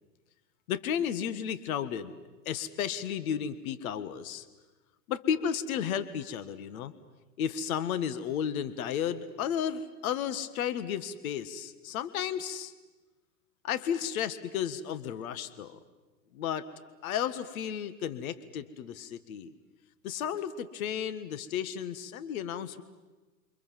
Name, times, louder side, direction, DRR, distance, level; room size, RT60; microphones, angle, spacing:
voice 1, 0.7-2.1 2.5-4.5 5.1-6.9 7.4-12.7 13.6-15.8 16.3-16.7 17.0-19.5 20.0-22.8, left 8 dB, 65° left, 13 dB, 1.8 m, -33 dB
29.0 x 25.0 x 7.6 m, 1.2 s
hypercardioid pair, 125°, 47 cm